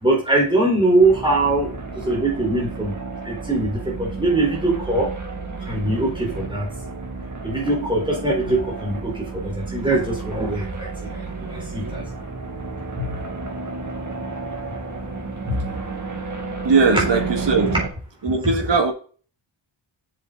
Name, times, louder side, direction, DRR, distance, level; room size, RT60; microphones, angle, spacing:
voice 1, 0.0-3.0 3.2-5.1 5.6-6.7 7.4-12.0 13.0-13.2 15.4-15.7, right 2 dB, 10° right, -3 dB, 3.8 m, -22 dB
sound 1, 1.0-17.9, right 4 dB, 35° right, 2.1 m, -32 dB
voice 2, 16.6-17.7 18.2-18.9, right 4 dB, 60° right, 3 dB, 2.2 m, -19 dB
7.5 x 7.3 x 3.9 m, 0.38 s
wide cardioid pair, 160°, 49 cm